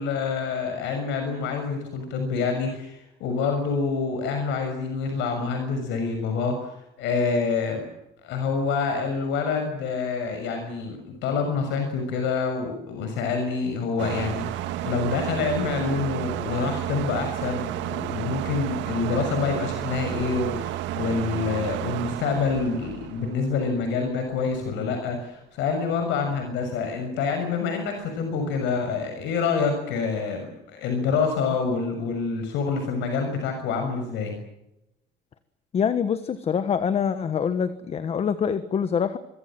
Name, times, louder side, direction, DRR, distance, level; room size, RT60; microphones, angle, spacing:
voice 1, 0.0-7.8 8.2-34.4, left 5 dB, 75° left, 5 dB, 6.5 m, -27 dB
sound 1, 14.0-24.2, right 13 dB, 75° right, 1.8 m, -32 dB
voice 2, 35.7-39.2, left 7 dB, 35° left, 12 dB, 1.3 m, -25 dB
26.0 x 23.5 x 7.6 m, 0.88 s
cardioid pair, 160°, 19 cm